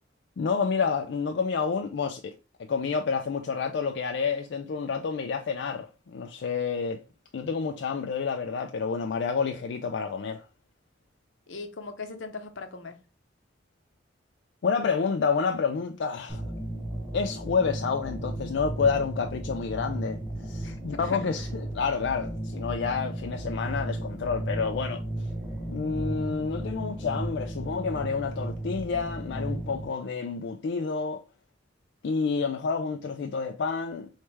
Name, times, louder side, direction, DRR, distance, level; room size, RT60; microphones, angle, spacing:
voice 1, 0.4-2.3 2.6-7.0 7.3-10.5 14.6-16.4 17.1-25.2 25.7-31.2 32.0-34.1, left 5 dB, 65° left, 0.4 m, -29 dB
voice 2, 11.5-13.0 20.6-21.2, left 4 dB, 80° left, 0.8 m, -39 dB
sound 1, 16.3-29.8, right 1 dB, 10° right, 0.9 m, -35 dB
4.5 x 3.2 x 3.2 m
head